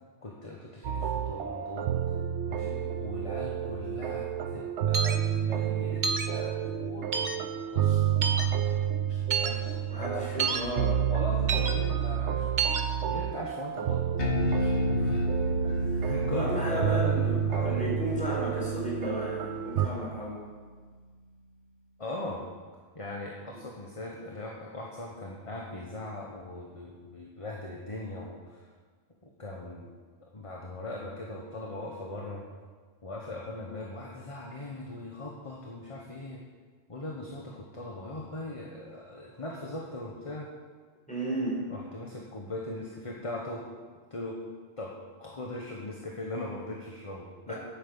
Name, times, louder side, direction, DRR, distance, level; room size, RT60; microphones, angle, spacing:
voice 1, 0.2-1.9 2.5-8.8 9.1-10.3 11.1-12.5 13.1-14.0 14.6-15.2 15.5-17.9 22.0-22.5 22.9-28.6 29.4-29.9 30.3-32.4 33.0-36.4 36.9-40.5 41.7-43.6 44.1-44.4 44.8-44.9 45.2-47.5, left 2 dB, 30° left, -1 dB, 1.3 m, -39 dB
sound 1, 0.8-19.9, right 9 dB, 90° right, 1.0 m, -30 dB
sound 2, 4.9-5.2 6.0-6.3 7.1-7.4 8.2-8.5 9.3-9.5 10.4-10.6 11.5-11.7 12.6-12.8, right 5 dB, 45° right, 0.9 m, -28 dB
voice 2, 9.9-11.0 15.0-15.2 15.6-20.4 23.5-23.7 41.1-41.6 47.5-47.6, right 1 dB, 5° left, -5 dB, 4.3 m, -34 dB
Bass guitar, 14.2-20.6, equal, 75° left, 1.7 m, -31 dB
10.5 x 8.7 x 7.1 m, 1.5 s
omnidirectional pair, 1.1 m